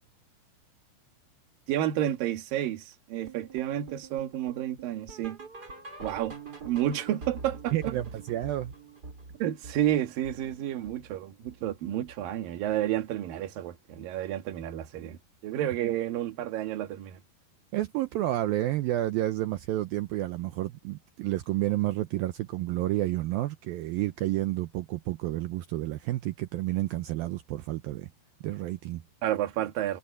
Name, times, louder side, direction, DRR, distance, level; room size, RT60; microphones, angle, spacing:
voice 1, 1.7-5.4 6.0-6.3 6.6-8.0 9.4-17.2 29.2-30.0, right 12 dB, 60° right, 3.2 m, -30 dB
sound 1, 3.3-12.4 12.7-13.0 13.3-13.4 13.9-14.0 14.5-14.6, right 4 dB, 25° right, 4.1 m, -46 dB
voice 2, 7.7-8.7 17.7-28.1 28.4-29.0, right 15 dB, 80° right, 2.2 m, -30 dB
omnidirectional pair, 4.9 m